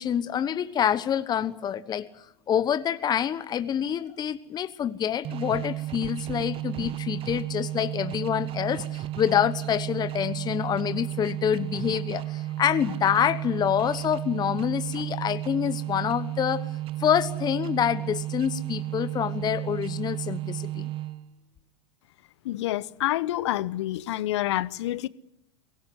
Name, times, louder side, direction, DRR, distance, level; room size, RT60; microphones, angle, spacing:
voice 1, 0.0-16.7 17.0-20.9, left 9 dB, 25° left, 1.1 m, -27 dB
sound 1, 5.2-21.4, right 15 dB, 35° right, 1.1 m, -33 dB
voice 2, 22.4-25.1, left 15 dB, 65° left, 1.0 m, -28 dB
23.0 x 18.5 x 9.8 m
hypercardioid pair, 100°, 16 cm